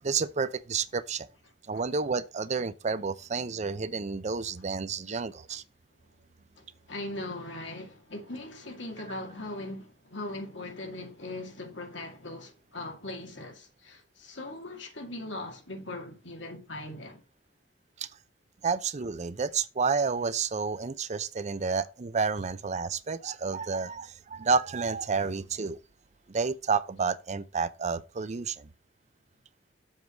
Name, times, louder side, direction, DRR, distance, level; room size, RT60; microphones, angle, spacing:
voice 1, 0.0-1.3 1.7-5.6 18.6-25.8 26.3-28.6, right 5 dB, 40° right, 0.5 m, -30 dB
voice 2, 6.6-17.2, left 2 dB, 85° left, 2.1 m, -40 dB
7.3 x 4.6 x 6.3 m
head